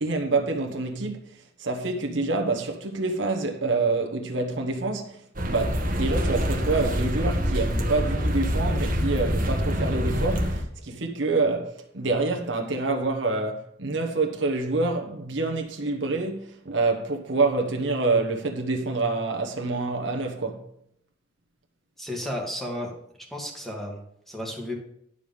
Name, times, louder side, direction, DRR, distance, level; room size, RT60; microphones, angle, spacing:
voice 1, 0.0-20.6, right 3 dB, 75° right, 1.2 m, -27 dB
sound 1, 5.4-10.6, equal, 45° right, 1.3 m, -25 dB
voice 2, 22.0-22.9 23.2-24.7, left 1 dB, ahead, 2.0 m, -33 dB
11.0 x 5.1 x 5.4 m
head